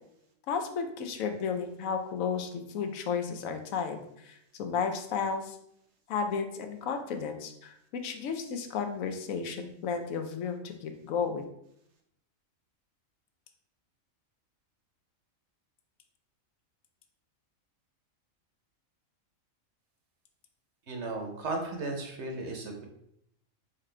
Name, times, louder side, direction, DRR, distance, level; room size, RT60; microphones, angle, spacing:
voice 1, 0.5-5.6 6.1-7.7 8.0-11.5, left 6 dB, 80° left, 6 dB, 1.0 m, -33 dB
voice 2, 20.9-22.9, right 2 dB, 60° right, 2 dB, 1.0 m, -35 dB
4.4 x 3.7 x 3.2 m, 0.74 s
omnidirectional pair, 1.4 m